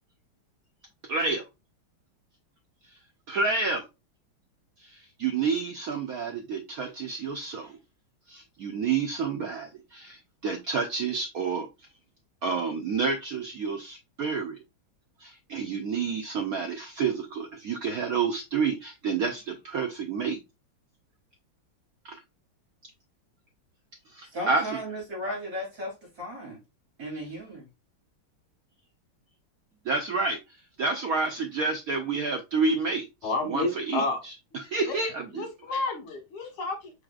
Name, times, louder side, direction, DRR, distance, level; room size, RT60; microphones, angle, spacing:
voice 1, 1.1-1.4 3.3-3.9 4.8-7.8 8.3-11.7 12.4-14.6 15.2-20.4 22.0-22.2 24.1-24.8 29.8-30.4 30.8-35.4, right 4 dB, 90° right, 0.7 m, -29 dB
voice 2, 24.3-26.6 27.0-27.7, equal, 45° right, 3.5 m, -35 dB
voice 3, 33.2-34.2 34.9-35.0 35.3-36.9, left 3 dB, 80° left, 2.2 m, -30 dB
4.9 x 4.2 x 2.3 m
omnidirectional pair, 2.3 m